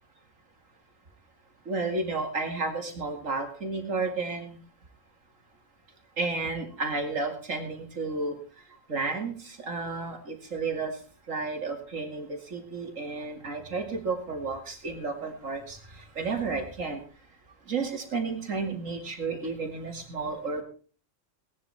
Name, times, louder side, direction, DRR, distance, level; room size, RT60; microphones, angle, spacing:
voice 1, 1.7-4.6 6.2-8.3 8.9-10.9 11.3-15.8 16.2-17.0 17.7-20.6, right 3 dB, 80° right, 4 dB, 2.8 m, -32 dB
18.5 x 11.0 x 4.3 m, 0.39 s
omnidirectional pair, 1.3 m